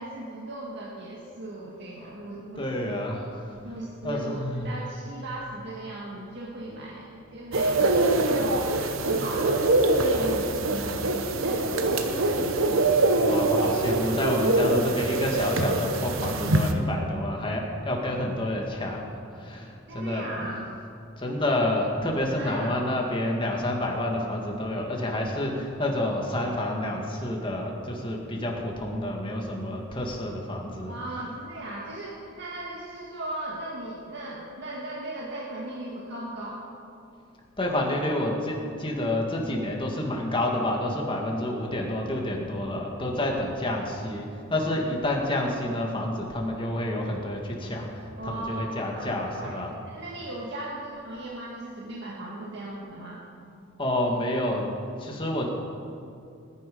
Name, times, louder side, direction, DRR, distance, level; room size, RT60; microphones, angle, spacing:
voice 1, 0.0-3.0 3.6-8.8 9.0-9.7 10.0-11.9 12.4-12.9 19.9-20.7 22.3-22.8 30.9-36.7 48.2-53.2, right 1 dB, 55° right, -4 dB, 1.9 m, -37 dB
voice 2, 2.6-3.6 4.0-4.7 13.2-20.2 21.2-30.9 37.6-49.7 53.8-54.6 55.0-55.5, left 1 dB, 25° left, 0 dB, 2.1 m, -29 dB
sound 1, 7.5-16.7, right 2 dB, 75° right, 1.1 m, -24 dB
19.5 x 10.0 x 5.5 m, 2.5 s
head